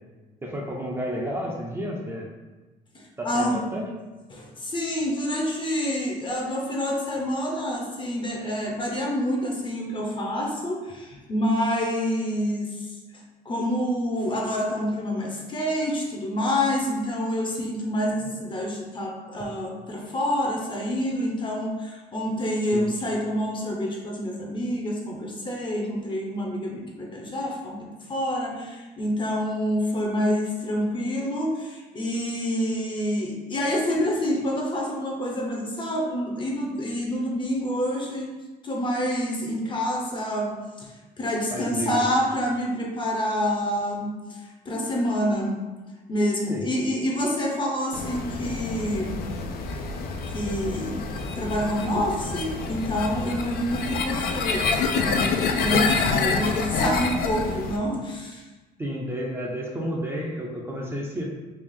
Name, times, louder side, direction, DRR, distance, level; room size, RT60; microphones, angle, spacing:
voice 1, 0.4-2.3 3.2-3.9 22.7-22.9 41.5-42.0 46.5-46.7 58.8-61.2, equal, 15° right, -3 dB, 0.5 m, -31 dB
voice 2, 2.9-3.6 4.3-38.3 38.6-45.6 46.1-49.2 50.3-51.0 51.4-54.7 55.0-58.4, equal, 30° left, -1 dB, 0.7 m, -27 dB
sound 1, 47.9-57.8, left 4 dB, 65° left, 0.4 m, -27 dB
3.3 x 2.4 x 3.6 m, 1.2 s
cardioid pair, 110°, 17 cm